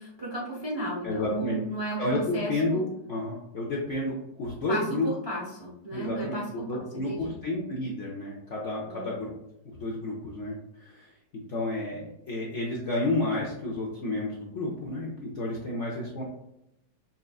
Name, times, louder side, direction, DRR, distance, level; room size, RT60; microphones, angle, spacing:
voice 1, 0.0-2.8 4.7-6.7 6.9-7.3 8.9-9.0, right 2 dB, 40° right, -5 dB, 0.3 m, -34 dB
voice 2, 1.0-1.6 2.0-5.1 5.9-9.3 9.6-16.2, left 2 dB, 65° left, -3 dB, 0.7 m, -31 dB
5.5 x 2.4 x 2.3 m, 0.84 s
omnidirectional pair, 2.0 m